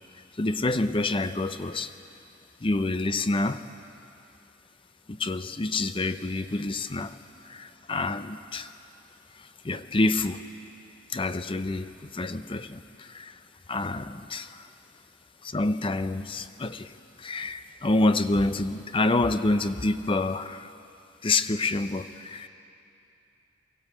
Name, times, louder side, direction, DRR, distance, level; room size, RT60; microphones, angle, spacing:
voice 1, 0.4-1.9 2.6-3.6 5.1-7.2 7.4-8.7 9.3-10.5 11.1-13.4 13.7-14.7 15.4-20.7 21.2-22.5, left 2 dB, 25° left, 11 dB, 0.6 m, -28 dB
23.5 x 16.0 x 8.4 m, 2.8 s
head